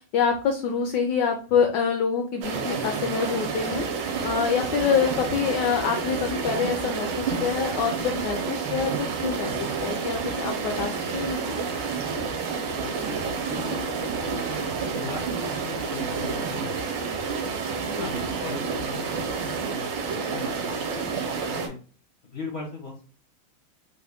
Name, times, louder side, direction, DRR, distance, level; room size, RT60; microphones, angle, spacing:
voice 1, 0.1-3.9 4.2-11.5 18.0-18.1, left 6 dB, 70° left, 4 dB, 1.1 m, -26 dB
sound 1, 2.4-21.7, right 5 dB, 70° right, 1.3 m, -29 dB
sound 2, 3.7-19.7, right 3 dB, 85° right, 0.8 m, -43 dB
voice 2, 12.8-17.2 17.9-21.8 22.2-23.0, left 3 dB, 55° left, -1 dB, 0.7 m, -39 dB
3.8 x 2.1 x 3.4 m, 0.39 s
omnidirectional pair, 2.3 m